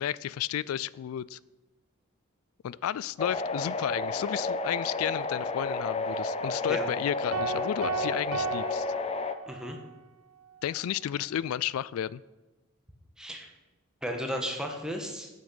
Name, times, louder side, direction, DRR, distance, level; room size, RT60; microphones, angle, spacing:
voice 1, 0.0-1.4 2.6-8.9 10.6-12.2, left 10 dB, 85° left, 21 dB, 0.3 m, -32 dB
sound 1, 3.2-9.3, left 3 dB, 30° left, 0.5 m, -32 dB
sound 2, 7.3-9.8, right 5 dB, 85° right, 1.1 m, -34 dB
voice 2, 9.5-9.8 13.2-13.5 14.0-15.3, equal, 5° right, 2 dB, 1.3 m, -34 dB
8.5 x 6.4 x 7.9 m, 1.1 s
head